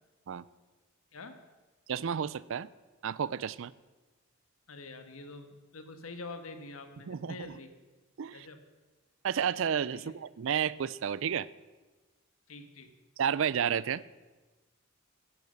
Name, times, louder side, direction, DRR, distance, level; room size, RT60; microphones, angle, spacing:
voice 1, 1.1-1.4 4.7-7.7 8.3-8.6 9.9-10.1 12.5-12.9, left 3 dB, 80° left, 8 dB, 1.3 m, -46 dB
voice 2, 1.9-2.7 3.0-3.7 7.1-7.4 8.2-8.5 9.2-11.5 13.2-14.0, right 8 dB, 65° right, 20 dB, 0.4 m, -31 dB
11.0 x 10.5 x 6.7 m, 1.2 s
head